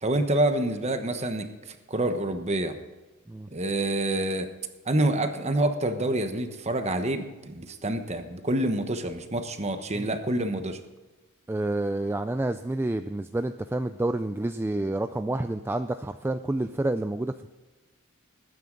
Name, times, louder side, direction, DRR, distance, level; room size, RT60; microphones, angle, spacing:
voice 1, 0.0-2.8 3.5-4.5 4.9-10.8, right 1 dB, 30° right, 7 dB, 1.1 m, -27 dB
voice 2, 11.5-17.5, right 2 dB, 10° right, 9 dB, 0.3 m, -29 dB
20.5 x 9.3 x 3.9 m, 1.2 s
head